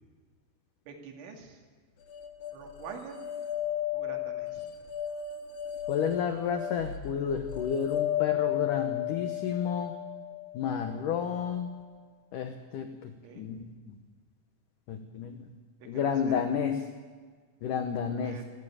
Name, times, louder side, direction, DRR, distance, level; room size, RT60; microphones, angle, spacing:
voice 1, 0.9-1.6 2.5-3.2 3.9-4.7 13.2-13.6 15.8-16.4 18.2-18.5, right 6 dB, 85° right, 3 dB, 4.8 m, -46 dB
sound 1, 2.1-11.3, left 11 dB, 60° left, 2.3 m, -34 dB
voice 2, 5.9-9.9 10.5-11.7 12.3-14.0 14.9-15.5 15.9-16.8 17.6-18.4, left 7 dB, 90° left, 7 dB, 1.8 m, -31 dB
21.0 x 14.5 x 8.7 m, 1.5 s
omnidirectional pair, 5.3 m